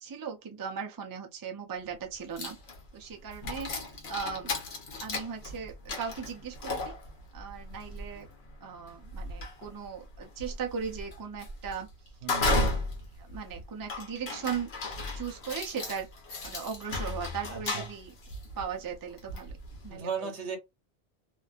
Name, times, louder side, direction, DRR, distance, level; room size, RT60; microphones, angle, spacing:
voice 1, 0.0-2.6 2.9-3.7 4.1-4.5 5.0-6.9 7.3-8.3 8.6-11.9 12.4-12.7 13.2-14.7 15.1-16.1 16.4-18.1 18.6-19.5 19.8-20.3, right 6 dB, 35° right, 0.3 m, -38 dB
sound 1, 1.9-2.0 2.4-20.0, left 2 dB, 70° left, 1.0 m, -35 dB
voice 2, 12.2-12.7 17.5-17.8 19.9-20.6, right 6 dB, 85° right, 1.0 m, -36 dB
2.6 x 2.2 x 2.4 m
omnidirectional pair, 1.1 m